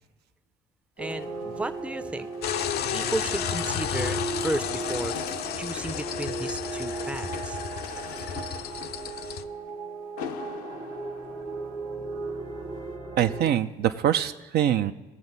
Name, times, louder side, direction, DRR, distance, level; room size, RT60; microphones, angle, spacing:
sound 1, 1.0-12.2 12.8-12.9, left 8 dB, 85° left, 0.8 m, -45 dB
voice 1, 1.0-2.3 2.9-5.1 5.6-7.6, right 1 dB, 5° right, 10 dB, 0.5 m, -33 dB
sound 2, 1.0-13.5, right 3 dB, 85° right, 1.3 m, -36 dB
sound 3, 2.4-9.4, left 9 dB, 55° left, 0.5 m, -32 dB
voice 2, 13.2-14.9, right 10 dB, 55° right, 10 dB, 0.5 m, -24 dB
18.5 x 7.1 x 4.0 m, 1.1 s
hypercardioid pair, 65°, 19 cm